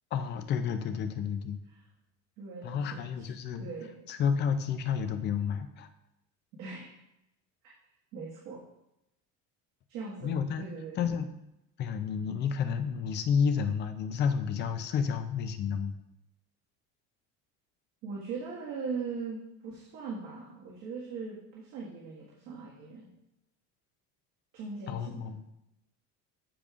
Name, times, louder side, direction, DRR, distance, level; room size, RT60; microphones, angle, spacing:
voice 1, 0.1-1.6 2.6-3.7 4.1-5.9 10.2-10.7 11.0-11.3 11.8-15.9 24.9-25.4, left 7 dB, 30° left, 8 dB, 0.5 m, -30 dB
voice 2, 2.4-3.3 3.6-4.0 6.6-6.9 8.1-8.6 9.9-11.0 18.0-23.1 24.5-25.3, right 4 dB, 60° right, -6 dB, 1.8 m, -40 dB
13.5 x 5.3 x 2.5 m, 0.86 s
cardioid pair, 170°, 34 cm